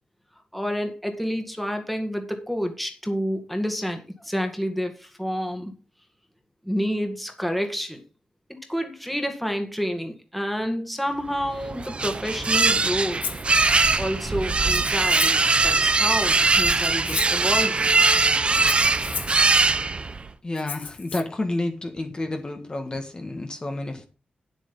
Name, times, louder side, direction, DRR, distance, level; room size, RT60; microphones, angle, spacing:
voice 1, 0.5-5.7 6.7-8.0 8.5-13.2 14.0-17.9, equal, ahead, 5 dB, 2.0 m, -29 dB
sound 1, 11.4-20.3, right 3 dB, 35° right, 0.8 m, -21 dB
Rattle (instrument), 13.2-13.5 14.6-15.5 16.5-17.4 18.5-19.4 20.6-21.2, left 7 dB, 85° left, 1.2 m, -34 dB
voice 2, 20.4-24.0, left 2 dB, 30° left, 4 dB, 1.7 m, -30 dB
9.3 x 8.0 x 5.4 m, 0.34 s
wide cardioid pair, 100°, 3 cm